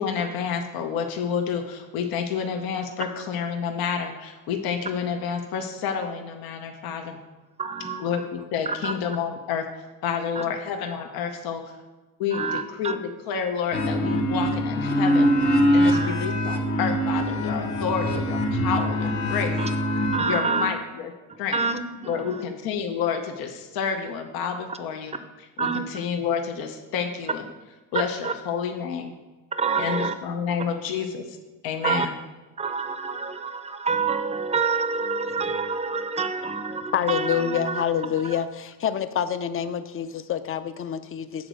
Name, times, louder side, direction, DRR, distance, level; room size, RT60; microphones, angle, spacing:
voice 1, 0.0-7.2 8.0-11.8 12.2-13.0 13.3-15.3 15.7-19.5 20.3-21.1 21.4-21.6 22.1-25.1 25.6-27.4 27.9-29.2 29.8-31.4 31.6-32.2, left 6 dB, 80° left, 5 dB, 0.9 m, -29 dB
voice 2, 7.6-8.2 8.7-8.9 10.4-10.5 12.3-13.0 15.8-16.2 19.6-19.7 20.1-20.7 21.3-22.4 24.7-24.8 25.6-25.8 28.2-28.3 29.5-30.1 31.8-32.1 32.6-37.8 38.2-38.4, right 4 dB, 20° right, 10 dB, 0.5 m, -27 dB
sound 1, 13.7-20.2, equal, 55° left, 1.3 m, -23 dB
voice 3, 36.9-41.5, left 9 dB, 35° left, 12 dB, 0.5 m, -27 dB
8.6 x 4.0 x 6.2 m, 1.2 s
cardioid pair, 105°, 35 cm